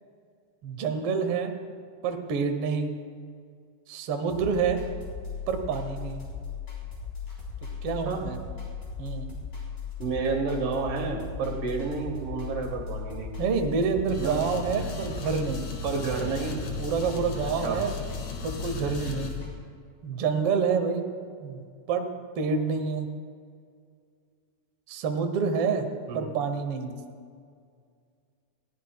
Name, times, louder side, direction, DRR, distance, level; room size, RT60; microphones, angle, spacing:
voice 1, 0.6-1.5 2.0-2.9 3.9-4.8 5.5-6.3 7.8-8.4 9.0-9.3 13.4-15.7 16.8-17.9 18.4-19.3 20.0-21.1 21.4-22.1 22.3-23.1 24.9-25.9 26.1-27.0, right 5 dB, 65° right, 5 dB, 1.5 m, -28 dB
sound 1, 4.3-19.5, left 6 dB, 25° left, 4.0 m, -37 dB
voice 2, 10.0-13.3 14.2-14.4 15.8-16.6 17.4-17.8 26.1-26.2, right 4 dB, 80° right, 2 dB, 3.1 m, -30 dB
sound 2, 14.1-19.3, left 2 dB, 75° left, 3.2 m, -38 dB
21.0 x 15.5 x 2.3 m, 2.2 s
omnidirectional pair, 3.7 m